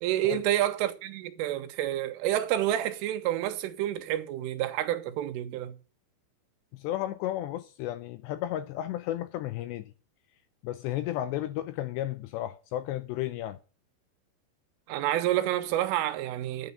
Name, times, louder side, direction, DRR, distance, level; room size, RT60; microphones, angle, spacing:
voice 1, 0.0-5.8 14.9-16.7, right 13 dB, 90° right, 3.7 m, -29 dB
voice 2, 6.7-9.9 10.6-13.6, left 13 dB, 80° left, 2.6 m, -33 dB
10.5 x 9.2 x 6.9 m
omnidirectional pair, 5.6 m